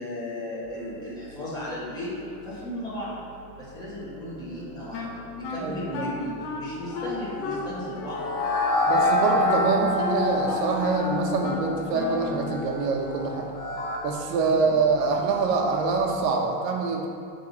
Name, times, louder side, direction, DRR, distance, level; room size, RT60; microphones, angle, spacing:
voice 1, 0.0-2.2 2.4-3.2 3.6-8.2 14.6-14.8, left 1 dB, 10° left, -9 dB, 1.9 m, -35 dB
sound 1, 0.6-16.0, equal, 15° right, 0.9 m, -47 dB
Wind instrument woodwind instrument, 4.9-12.5, left 3 dB, 80° left, 1.3 m, -35 dB
voice 2, 5.6-6.1 8.9-13.5 14.0-17.1, right 4 dB, 80° right, 1 dB, 1.4 m, -25 dB
sound 2, 6.9-14.0, left 2 dB, 30° left, 0.9 m, -27 dB
12.0 x 4.1 x 4.2 m, 2.3 s
cardioid pair, 170°, 48 cm